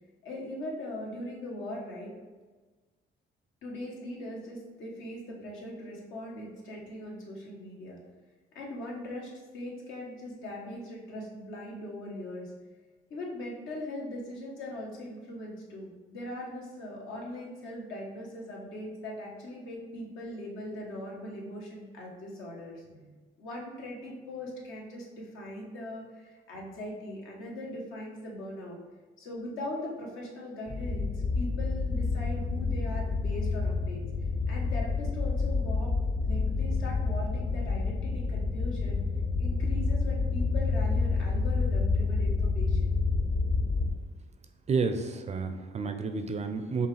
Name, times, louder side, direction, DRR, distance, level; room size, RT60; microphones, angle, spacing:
voice 1, 0.2-2.1 3.6-8.0 8.5-12.5 13.1-28.8 29.2-34.0 34.5-35.9 36.2-39.0 39.4-42.9, left 1 dB, 80° left, -2 dB, 1.1 m, -40 dB
sound 1, 30.7-43.9, left 4 dB, 45° left, 0.7 m, -28 dB
voice 2, 44.7-46.9, right 4 dB, 35° right, 7 dB, 0.4 m, -30 dB
5.4 x 2.4 x 3.2 m, 1.4 s
cardioid pair, 90°, 20 cm